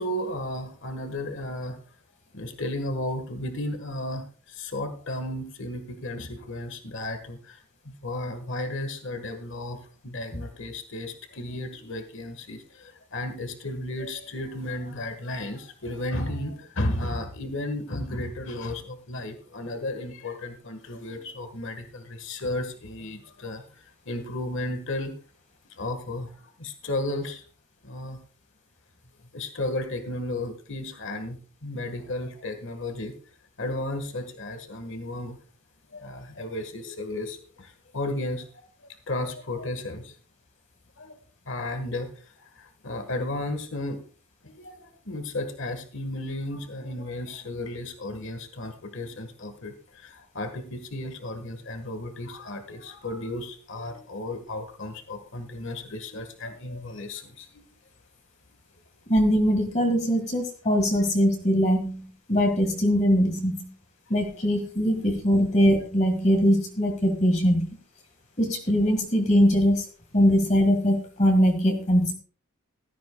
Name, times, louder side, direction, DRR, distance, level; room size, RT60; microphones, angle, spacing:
voice 1, 0.0-1.8 2.3-25.1 25.7-27.4 27.8-28.2 29.3-33.1 33.6-35.4 35.9-38.5 38.8-40.2 41.0-41.2 41.5-44.0 44.4-57.7, left 1 dB, 55° left, 8 dB, 1.5 m, -34 dB
voice 2, 59.1-63.7 64.1-67.7 68.4-69.9 70.1-72.1, equal, 30° left, 4 dB, 1.8 m, -22 dB
16.0 x 13.0 x 2.3 m, 0.39 s
head